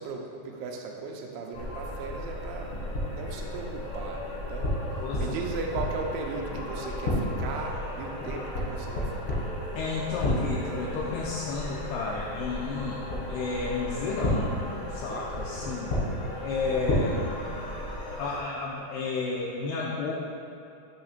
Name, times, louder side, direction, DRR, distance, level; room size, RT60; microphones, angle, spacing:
voice 1, 0.0-2.7 3.0-9.5 16.0-16.3, right 4 dB, 85° right, 1 dB, 3.0 m, -37 dB
sound 1, 1.5-18.4, left 1 dB, 70° left, 1.3 m, -32 dB
voice 2, 5.0-5.4 9.7-13.0 13.3-14.6 14.9-16.0 16.4-17.4 18.2-20.1, left 4 dB, 90° left, -4 dB, 2.4 m, -32 dB
8.7 x 3.2 x 5.9 m, 2.7 s
omnidirectional pair, 5.3 m